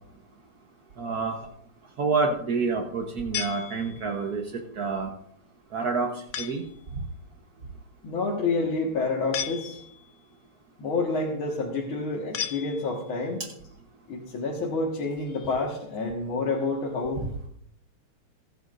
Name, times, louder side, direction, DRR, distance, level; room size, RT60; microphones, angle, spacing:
voice 1, 1.0-1.4 2.0-5.1 5.7-6.6 17.2-17.3, right 4 dB, 65° right, 1 dB, 0.9 m, -28 dB
sound 1, 3.3-4.3 6.3-6.8 9.3-10.2 12.3-13.2, left 9 dB, 80° left, 1.2 m, -35 dB
voice 2, 8.0-9.8 10.8-13.4 14.1-17.2, left 3 dB, 45° left, -3 dB, 2.3 m, -28 dB
27.5 x 9.6 x 2.6 m, 0.71 s
omnidirectional pair, 3.4 m